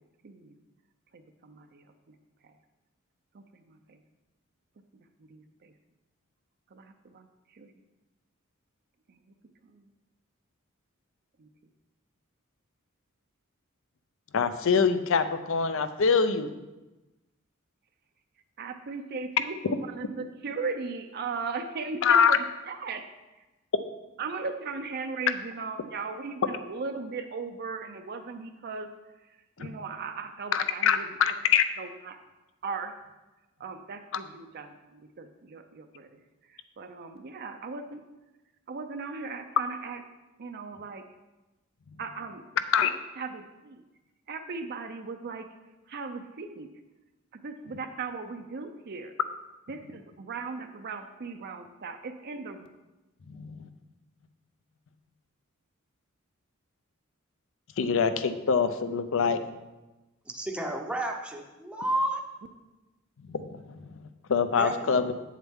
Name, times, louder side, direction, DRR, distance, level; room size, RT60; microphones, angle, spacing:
voice 1, 0.2-0.6 1.1-2.2 2.4-2.6 3.3-4.0 4.9-5.7 6.7-7.7 9.1-9.3 9.6-9.9 11.4-11.5 18.6-23.0 24.2-28.9 29.2-31.3 31.8-32.2 32.6-32.9 33.6-38.0 38.7-40.0 40.4-41.1 42.0-42.4 43.2-43.8 44.3-45.5 45.9-46.7 47.3-49.1 49.7-52.7, right 4 dB, 50° right, 6 dB, 0.5 m, -38 dB
voice 2, 14.3-16.5 22.0-22.4 29.6-29.7 30.5-31.6 42.7-42.9 53.3-53.7 57.8-59.4 63.3-63.9 64.3-65.1, left 6 dB, 65° left, 11 dB, 0.5 m, -24 dB
voice 3, 60.3-62.2 64.6-65.1, right 1 dB, 5° right, 1 dB, 0.7 m, -31 dB
8.2 x 7.4 x 3.6 m, 1.1 s
head